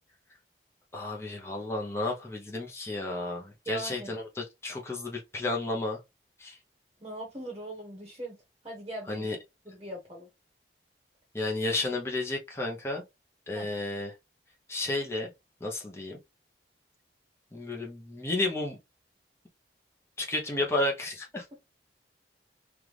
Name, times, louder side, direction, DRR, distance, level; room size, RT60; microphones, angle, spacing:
voice 1, 0.9-6.0 6.4-6.6 9.1-9.4 11.3-13.0 13.5-14.1 14.7-15.3 15.6-16.2 17.5-18.8 20.2-21.4, left 2 dB, 15° left, 0.9 m, -32 dB
voice 2, 3.7-4.1 7.0-8.4 8.6-9.3 9.6-10.3 13.5-13.7, right 1 dB, 25° right, 1.1 m, -40 dB
3.4 x 2.5 x 3.0 m
head